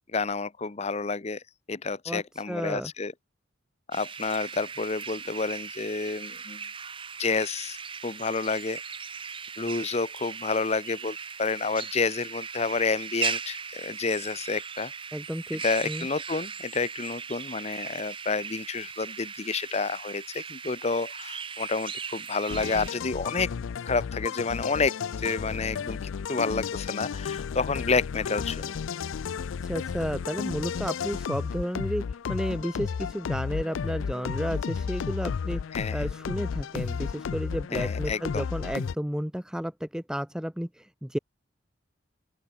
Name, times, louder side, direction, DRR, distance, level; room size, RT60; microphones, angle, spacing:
voice 1, 0.1-1.4 1.7-3.1 3.9-6.6 7.2-7.8 8.0-8.8 9.6-14.9 15.5-23.5 23.8-26.0 26.3-28.7 35.7-36.1 37.7-38.4, left 4 dB, 35° left, 0.7 m, -29 dB
voice 2, 2.5-2.9 15.1-16.1 29.6-35.6 35.9-41.2, equal, 5° right, 0.7 m, -32 dB
sound 1, 3.9-22.9, right 6 dB, 25° right, 1.2 m, -38 dB
sound 2, 22.5-38.9, left 6 dB, 80° left, 0.4 m, -33 dB
open air
head